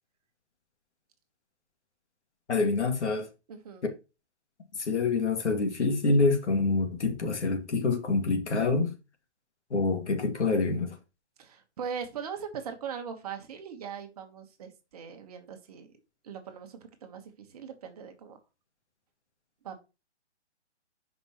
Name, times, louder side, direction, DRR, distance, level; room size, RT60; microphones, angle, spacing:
voice 1, 2.5-3.3 4.9-8.9 9.7-10.9, left 3 dB, 85° left, 2.4 m, -26 dB
voice 2, 3.5-3.9 11.4-15.9 16.2-18.4 19.6-19.8, right 7 dB, 35° right, 1.4 m, -40 dB
11.5 x 5.4 x 3.1 m
hypercardioid pair, 165°, 34 cm